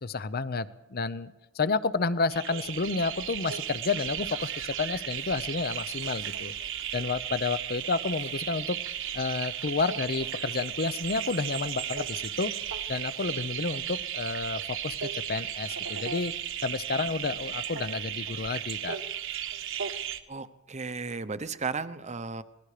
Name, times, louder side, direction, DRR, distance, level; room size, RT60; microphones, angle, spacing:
voice 1, 0.0-6.5 6.9-8.8 9.1-12.5 12.9-16.3 16.6-19.0, left 4 dB, 45° left, 15 dB, 0.7 m, -30 dB
sound 1, 2.3-20.2, right 9 dB, 65° right, 1.3 m, -35 dB
voice 2, 20.3-22.4, right 4 dB, 35° right, 12 dB, 0.9 m, -34 dB
27.0 x 20.0 x 5.0 m, 0.99 s
head